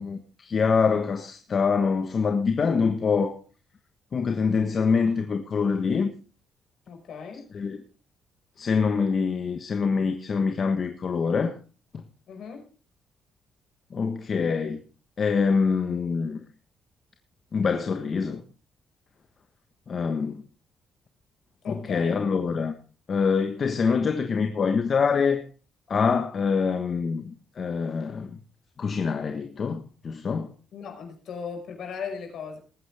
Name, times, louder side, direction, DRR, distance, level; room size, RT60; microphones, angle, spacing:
voice 1, 0.0-3.4 4.1-6.1 7.5-7.8 8.6-11.6 13.9-14.8 15.2-16.4 17.5-18.4 19.9-20.4 21.7-22.7 23.1-25.4 25.9-28.4 28.8-30.5, left 5 dB, 45° left, 1.3 m, -25 dB
voice 2, 6.9-7.4 12.3-12.6 21.6-22.2 30.7-32.6, left 6 dB, 65° left, 5.4 m, -37 dB
20.0 x 9.4 x 3.5 m
cardioid pair, 90°, 0 cm